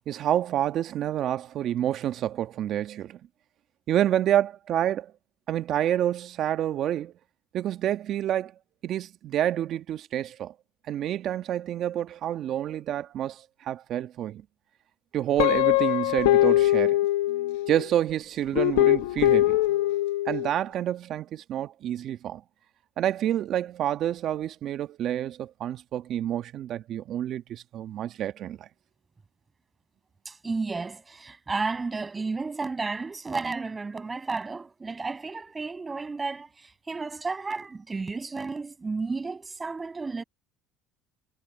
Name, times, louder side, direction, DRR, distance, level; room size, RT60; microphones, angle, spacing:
voice 1, 0.1-3.2 3.9-5.1 5.5-7.1 7.5-8.5 8.8-10.5 10.9-14.4 15.1-17.0 17.7-19.6 20.3-22.4 23.0-28.7, right 11 dB, 50° right, 1.6 m, -28 dB
Guitar, 15.4-17.8 18.5-20.5, left 16 dB, 85° left, 1.2 m, -22 dB
voice 2, 30.3-40.2, right 4 dB, 20° right, 6.9 m, -32 dB
supercardioid pair, 115°, 0 cm